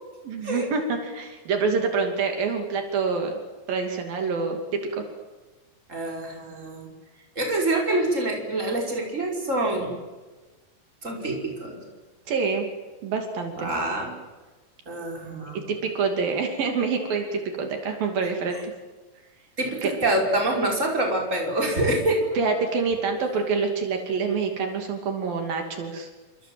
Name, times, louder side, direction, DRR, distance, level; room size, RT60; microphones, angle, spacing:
voice 1, 0.2-3.4 3.7-5.0 12.3-12.7 13.0-13.7 15.5-18.6 19.8-19.9 22.4-26.1, right 5 dB, 75° right, 4 dB, 4.4 m, -26 dB
voice 2, 5.9-6.9 7.4-10.0 11.0-11.8 13.6-14.2 14.9-15.7 19.6-22.3, right 1 dB, 20° right, 0 dB, 5.7 m, -26 dB
28.0 x 26.5 x 7.8 m, 1.2 s
omnidirectional pair, 4.1 m